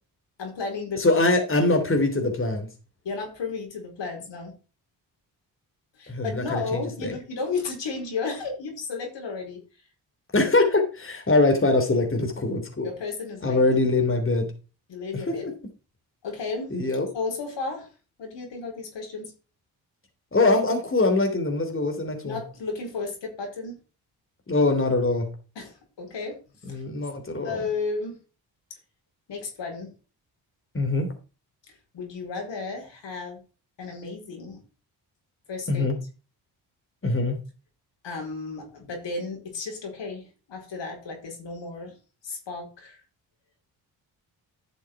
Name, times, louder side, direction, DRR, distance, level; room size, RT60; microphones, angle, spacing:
voice 1, 0.4-1.2 3.0-4.5 6.0-9.6 12.8-13.6 14.9-15.5 16.2-16.7 17.1-17.9 18.2-19.3 22.2-23.8 25.5-26.4 26.7-26.8 27.4-28.2 29.3-29.9 31.9-33.4 33.8-34.6 35.5-35.9 38.0-41.9 42.2-43.0, left 4 dB, 65° left, 1 dB, 4.7 m, -33 dB
voice 2, 1.0-2.7 6.1-7.1 10.3-12.9 13.4-14.5 15.1-15.5 16.7-17.1 20.3-22.4 24.5-25.3 26.7-27.6 30.7-31.1 35.7-36.0 37.0-37.4, left 2 dB, 25° left, 4 dB, 3.1 m, -23 dB
11.5 x 6.3 x 4.7 m, 0.34 s
supercardioid pair, 50°, 47 cm